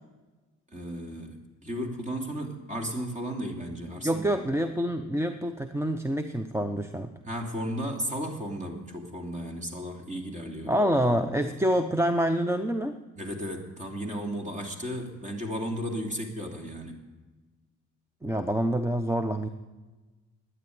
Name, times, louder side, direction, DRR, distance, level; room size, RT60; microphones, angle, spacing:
voice 1, 0.7-4.5 7.2-10.7 13.2-17.0, equal, 25° right, 2 dB, 2.9 m, -34 dB
voice 2, 4.0-7.1 10.6-12.9 18.2-19.5, right 1 dB, 10° right, 8 dB, 0.7 m, -26 dB
12.0 x 9.7 x 9.5 m, 1.2 s
cardioid pair, 90°, 30 cm